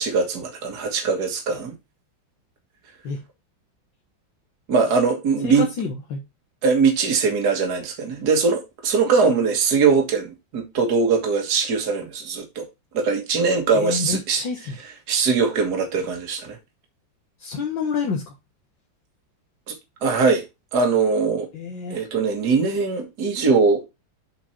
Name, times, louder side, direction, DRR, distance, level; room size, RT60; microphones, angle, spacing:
voice 1, 0.0-1.7 4.7-5.7 6.6-12.7 12.9-14.4 15.1-16.6 19.7-19.8 20.0-20.4 20.7-21.5 21.9-23.9, right 5 dB, 55° right, 2.2 m, -21 dB
voice 2, 5.4-6.2 13.7-14.8 17.4-18.3 21.5-22.0, left 5 dB, 70° left, 2.1 m, -28 dB
7.6 x 5.1 x 4.3 m
omnidirectional pair, 2.1 m